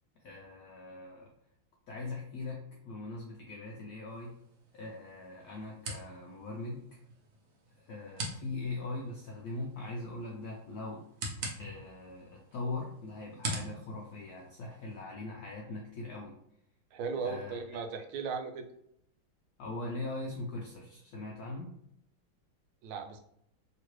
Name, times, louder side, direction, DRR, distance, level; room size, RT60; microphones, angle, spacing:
voice 1, 0.2-1.3 1.9-4.3 4.7-6.8 7.7-11.0 11.6-16.4 17.2-17.6 19.6-21.7, left 2 dB, 80° left, -1 dB, 0.8 m, -41 dB
sound 1, 4.1-15.0, right 2 dB, 60° right, 0.9 m, -45 dB
voice 2, 16.9-18.7 22.8-23.2, right 5 dB, 85° right, 5 dB, 1.4 m, -37 dB
3.1 x 2.9 x 3.0 m, 0.73 s
omnidirectional pair, 2.2 m